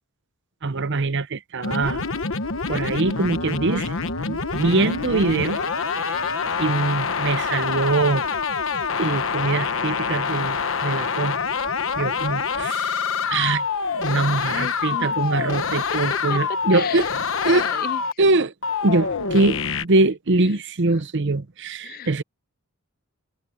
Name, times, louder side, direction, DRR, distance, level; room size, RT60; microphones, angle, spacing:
voice 1, 0.6-2.0 2.7-3.9 4.3-5.6 6.0-6.3 6.6-8.3 9.0-11.4 11.9-13.0 13.3-13.6 14.0-17.1 17.4-17.7 18.2-18.5 18.8-22.2, right 3 dB, 55° right, 0.8 m, -23 dB
sound 1, 1.6-18.1 18.6-19.8, left 5 dB, 65° left, 1.2 m, -26 dB
voice 2, 14.5-15.2 15.9-16.4 16.7-18.0 21.8-22.2, left 7 dB, 45° left, 0.4 m, -33 dB
head